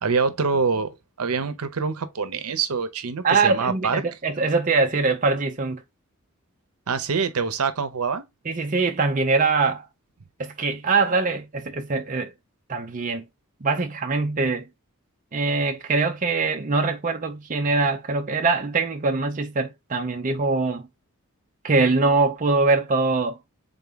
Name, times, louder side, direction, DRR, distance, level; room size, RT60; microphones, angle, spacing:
voice 1, 0.0-4.0 6.9-8.2, right 5 dB, 85° right, 0.7 m, -25 dB
voice 2, 3.2-5.8 8.5-9.9 10.4-12.3 12.7-13.2 13.6-14.6 15.3-20.8 21.6-23.4, right 3 dB, 35° right, 0.5 m, -23 dB
3.8 x 3.5 x 3.9 m
head